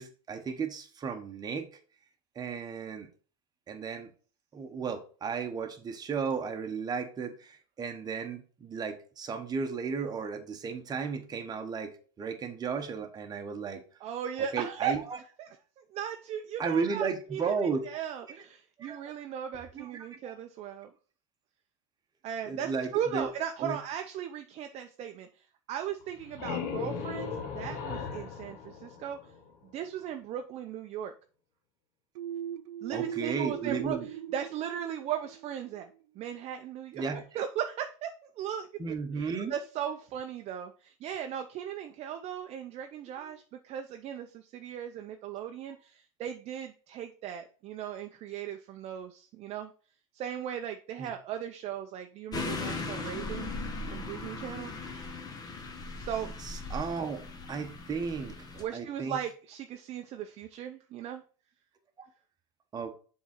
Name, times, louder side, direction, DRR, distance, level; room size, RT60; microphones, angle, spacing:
voice 1, 0.0-1.7 2.3-3.1 3.7-4.1 4.5-13.8 14.5-15.2 16.6-17.9 18.8-19.1 19.7-20.2 22.4-23.3 23.6-23.8 32.9-34.1 36.9-37.2 38.8-39.5 43.2-43.3 51.0-51.1 56.2-57.2 57.5-59.2 62.7-63.0, right 5 dB, 25° right, 5 dB, 1.1 m, -34 dB
voice 2, 14.0-15.5 15.8-17.5 17.8-20.9 22.2-29.2 29.7-31.1 32.8-34.0 34.3-49.7 50.1-53.5 53.9-54.7 56.0-56.3 58.6-61.2, right 9 dB, 40° right, 6 dB, 0.6 m, -37 dB
sound 1, 26.0-29.7, left 6 dB, 60° left, 1.3 m, -37 dB
sound 2, 32.2-35.8, right 10 dB, 85° right, 0.4 m, -39 dB
sound 3, 52.3-58.6, left 3 dB, 25° left, 1.1 m, -38 dB
7.1 x 3.8 x 4.4 m, 0.40 s
supercardioid pair, 120°, 17 cm